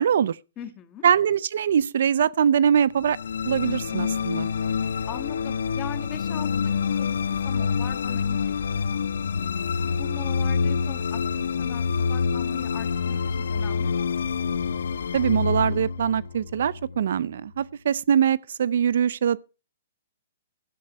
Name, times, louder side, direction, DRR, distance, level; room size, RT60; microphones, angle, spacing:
voice 1, 0.0-0.4 1.0-3.2 3.4-4.5 15.1-19.4, right 8 dB, 65° right, 0.5 m, -22 dB
voice 2, 0.6-1.0 5.1-7.2 7.4-9.3 9.9-14.0, left 11 dB, 20° left, 1.5 m, -41 dB
sound 1, 3.0-17.3, left 6 dB, 80° left, 1.0 m, -27 dB
17.0 x 12.0 x 3.1 m
hypercardioid pair, 155°, 0 cm